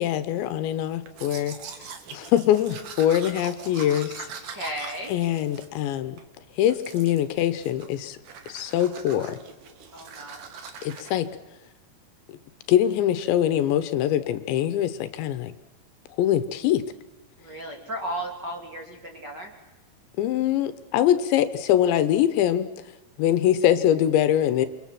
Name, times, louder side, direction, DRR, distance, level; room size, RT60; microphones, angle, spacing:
voice 1, 0.0-1.6 2.1-4.2 5.1-6.2 6.6-8.2 8.5-9.4 10.8-11.3 12.7-15.5 16.2-16.8 20.2-22.7 23.2-24.7, left 11 dB, 80° left, 12 dB, 3.3 m, -23 dB
Domestic sounds home sounds, 1.1-6.3 6.7-7.3 7.6-8.0 8.2-11.1, right 6 dB, 55° right, 2.8 m, -42 dB
voice 2, 4.5-5.1 9.9-10.4 17.4-19.5, right 1 dB, 30° right, 0 dB, 2.5 m, -34 dB
28.5 x 23.5 x 7.6 m, 1.1 s
omnidirectional pair, 5.3 m